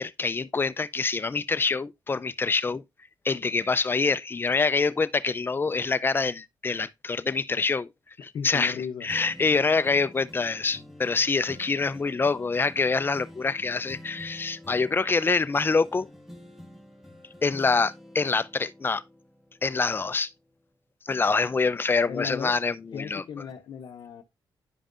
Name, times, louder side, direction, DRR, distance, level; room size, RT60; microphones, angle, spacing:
voice 1, 0.0-2.8 3.2-7.9 8.2-16.1 17.4-19.0 19.6-20.3 21.1-23.2, left 4 dB, 25° left, 0.5 m, -25 dB
voice 2, 8.3-9.1 22.1-22.6 22.9-24.2, left 7 dB, 70° left, 0.7 m, -36 dB
sound 1, 9.1-20.7 21.1-23.0 23.5-23.6, left 1 dB, 5° right, 1.8 m, -49 dB
10.0 x 5.2 x 2.5 m
cardioid pair, 90°, 8 cm